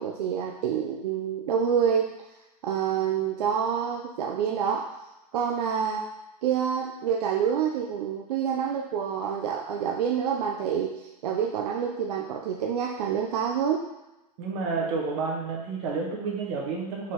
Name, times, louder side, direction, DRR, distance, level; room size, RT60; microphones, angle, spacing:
voice 1, 0.0-2.1 2.6-4.9 5.3-6.1 6.4-13.9 14.8-14.9, right 7 dB, 75° right, 0 dB, 0.5 m, -27 dB
voice 2, 14.4-17.1, right 4 dB, 50° right, -2 dB, 1.3 m, -30 dB
4.8 x 3.8 x 2.9 m, 0.98 s
supercardioid pair, 145°, 21 cm